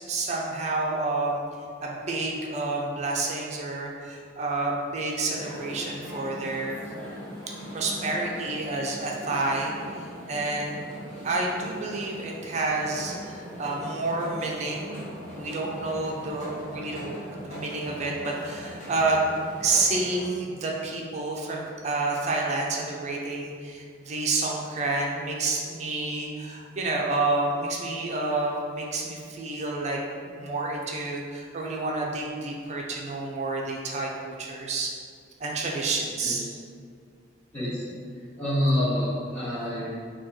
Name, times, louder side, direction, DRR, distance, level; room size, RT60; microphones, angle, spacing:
voice 1, 0.0-1.4 1.8-6.8 7.7-10.8 11.2-15.1 15.4-19.3 19.6-30.0 30.2-34.9 35.4-36.4, right 3 dB, 35° right, -1 dB, 0.3 m, -29 dB
sound 1, 5.3-20.2, equal, 40° left, 0.7 m, -40 dB
voice 2, 37.5-37.9 38.4-39.9, left 1 dB, 10° left, -16 dB, 0.8 m, -27 dB
2.9 x 2.3 x 3.7 m, 2.1 s
head